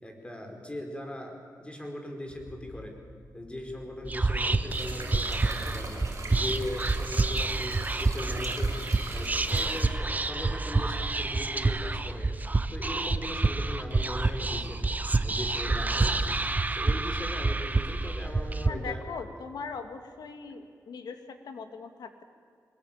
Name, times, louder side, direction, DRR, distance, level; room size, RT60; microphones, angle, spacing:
voice 1, 0.0-3.0 3.3-8.8 9.1-12.3 12.7-14.9 15.2-19.1, left 1 dB, 15° left, 3 dB, 4.8 m, -39 dB
sound 1, 2.3-12.4, left 2 dB, 55° left, 6.9 m, -53 dB
Whispering, 4.0-18.7, right 3 dB, 25° right, 1.1 m, -28 dB
sound 2, 4.7-9.9, right 3 dB, 45° right, 6.2 m, -40 dB
voice 2, 18.7-22.2, left 5 dB, 85° left, 7 dB, 2.3 m, -40 dB
24.5 x 21.0 x 8.9 m, 2.2 s
wide cardioid pair, 100°, 7 cm